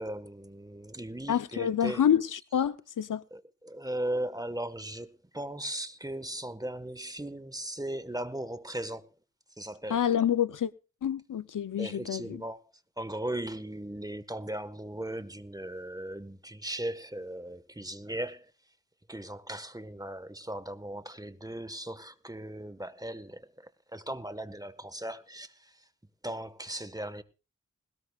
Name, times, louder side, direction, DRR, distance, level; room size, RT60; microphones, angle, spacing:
voice 1, 0.0-2.0 3.3-9.1 9.6-10.0 11.8-12.6 13.0-18.5 19.1-25.7 26.2-27.2, right 1 dB, 10° right, 1.4 m, -38 dB
voice 2, 1.3-3.2 9.9-10.7 11.0-12.4, left 9 dB, 70° left, 0.7 m, -27 dB
20.0 x 18.5 x 2.4 m
cardioid pair, 40°, 32 cm